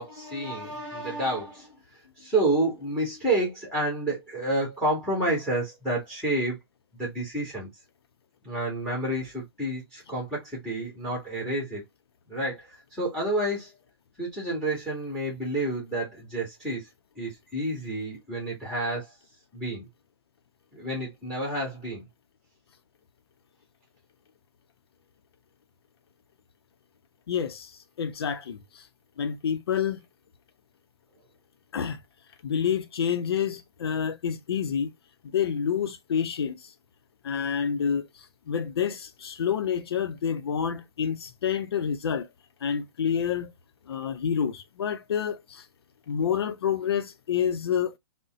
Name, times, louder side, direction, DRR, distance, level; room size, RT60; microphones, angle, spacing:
voice 1, 0.0-1.8 2.2-6.6 7.0-7.7 8.4-11.8 12.3-13.7 14.2-16.9 17.1-19.1 19.5-19.9 20.7-22.0, right 1 dB, 5° left, 1.6 m, -29 dB
voice 2, 27.3-28.8 29.2-30.0 31.7-32.0 32.4-34.9 35.3-36.7 37.2-38.1 38.5-42.3 42.6-43.5 43.9-45.6 46.1-47.9, left 7 dB, 70° left, 0.6 m, -28 dB
3.8 x 2.1 x 2.3 m
hypercardioid pair, 130°, 13 cm